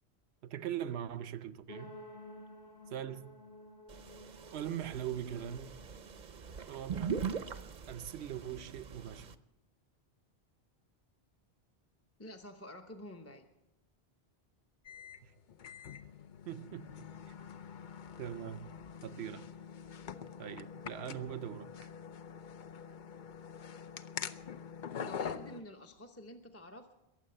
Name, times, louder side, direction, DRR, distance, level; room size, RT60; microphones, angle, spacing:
voice 1, 0.4-2.0 2.9-3.4 4.5-5.8 6.7-7.3 7.9-9.4 15.2-15.3 16.5-17.1 18.2-18.8 19.0-19.5 20.4-21.7, right 10 dB, 85° right, 1.0 m, -41 dB
sound 1, 1.7-7.6, left 1 dB, 80° left, 2.4 m, -54 dB
sound 2, 3.9-9.3, right 6 dB, 50° right, 0.7 m, -41 dB
voice 2, 12.2-13.4 25.0-26.9, left 1 dB, 15° left, 0.8 m, -49 dB
sound 3, 14.8-25.6, left 7 dB, 55° left, 0.7 m, -45 dB
22.0 x 7.6 x 7.7 m
omnidirectional pair, 1.1 m